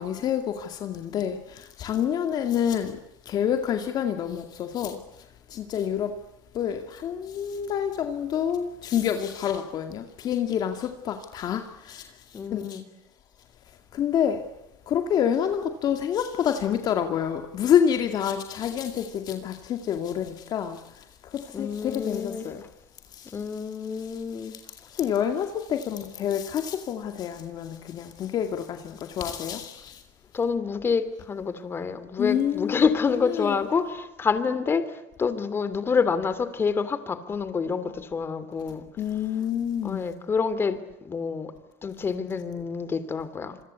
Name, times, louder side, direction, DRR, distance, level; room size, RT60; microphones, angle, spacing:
voice 1, 0.0-3.0 3.3-6.2 6.5-12.8 13.9-14.5 14.9-22.6 23.1-23.4 23.9-30.0 32.2-32.9 33.2-33.6 39.0-40.1, left 9 dB, 40° left, 2.2 m, -28 dB
voice 2, 12.3-12.9 21.5-22.5 23.3-24.5 30.3-38.9 39.8-41.5 41.8-43.6, left 5 dB, 20° left, 2.9 m, -27 dB
27.0 x 24.0 x 8.3 m
supercardioid pair, 135°, 10 cm